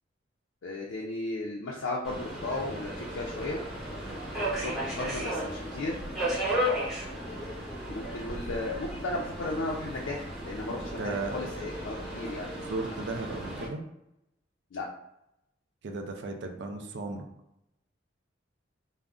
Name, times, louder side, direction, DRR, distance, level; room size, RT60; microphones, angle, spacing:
voice 1, 0.6-3.6 4.6-6.1 7.9-12.5 14.7-14.9, left 2 dB, 80° left, -2 dB, 0.4 m, -35 dB
Subway metro underground, 2.0-13.7, equal, ahead, 0.7 m, -35 dB
voice 2, 11.0-11.5 12.6-13.8 15.8-17.3, right 3 dB, 60° right, 4 dB, 0.4 m, -35 dB
2.4 x 2.0 x 3.5 m, 0.84 s
head